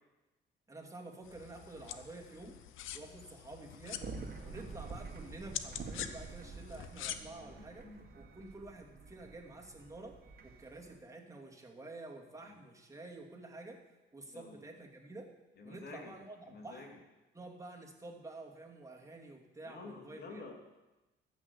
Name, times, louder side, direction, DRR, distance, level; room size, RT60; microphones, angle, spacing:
voice 1, 0.7-2.6 2.9-4.1 4.4-10.2 10.4-13.8 14.1-15.3 15.6-16.9 17.3-20.4, right 2 dB, 15° right, -1 dB, 2.6 m, -49 dB
sound 1, 1.2-7.2, left 10 dB, 85° left, 0.8 m, -46 dB
sound 2, 4.0-11.0, right 4 dB, 50° right, 1.9 m, -48 dB
voice 2, 7.4-8.1 14.3-14.6 15.6-16.1 16.5-17.0 19.6-20.5, left 3 dB, 55° left, 1 dB, 2.9 m, -49 dB
14.0 x 6.3 x 8.1 m, 1.1 s
cardioid pair, 90°, 20 cm